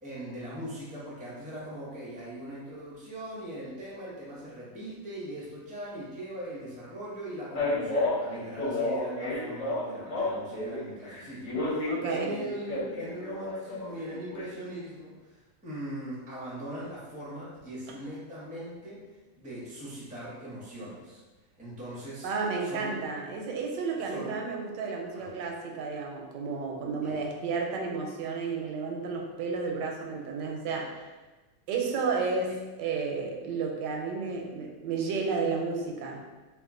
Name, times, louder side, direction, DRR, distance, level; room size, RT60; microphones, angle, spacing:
voice 1, 0.0-19.0 19.3-21.2 21.6-22.3 22.6-22.9 24.0-24.3 25.1-25.3 27.0-27.2 32.5-32.6, right 1 dB, 10° right, -7 dB, 0.5 m, -40 dB
Male speech man speaking, 7.6-10.8 11.1-14.4, left 2 dB, 55° left, 1.2 m, -31 dB
voice 2, 11.9-12.4 22.2-30.9 31.7-36.2, right 4 dB, 85° right, 1 dB, 1.2 m, -32 dB
2.9 x 2.4 x 3.6 m, 1.2 s
omnidirectional pair, 1.9 m